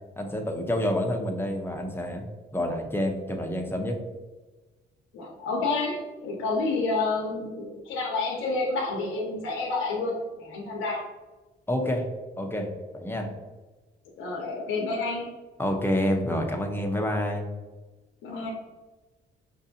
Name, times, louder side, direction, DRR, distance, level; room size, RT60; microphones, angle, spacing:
voice 1, 0.2-4.0 11.7-12.0 12.4-12.7 12.9-13.3 15.6-17.5, left 1 dB, 10° left, 2 dB, 0.7 m, -28 dB
voice 2, 5.1-11.1 14.2-15.3 18.2-18.5, left 3 dB, 90° left, -2 dB, 0.7 m, -29 dB
5.3 x 2.6 x 2.7 m, 1.2 s
cardioid pair, 90°, 20 cm